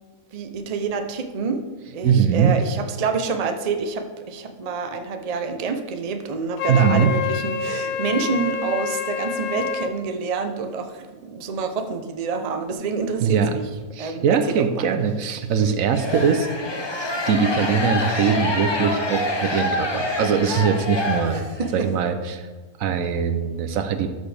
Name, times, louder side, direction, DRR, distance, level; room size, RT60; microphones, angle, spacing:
voice 1, 0.3-1.6 1.9-13.7 14.0-14.3 14.6-14.9 21.3-21.9, right 5 dB, 40° right, 6 dB, 0.6 m, -27 dB
voice 2, 2.0-2.6 6.7-7.1 13.2-13.6 13.9-16.5 17.3-22.5 22.8-24.1, right 6 dB, 75° right, 8 dB, 1.1 m, -21 dB
Wind instrument woodwind instrument, 6.6-9.9, left 7 dB, 85° left, 1.1 m, -27 dB
sound 1, 15.9-21.8, left 1 dB, 25° left, 0.7 m, -26 dB
13.0 x 6.3 x 3.4 m, 1.3 s
omnidirectional pair, 1.5 m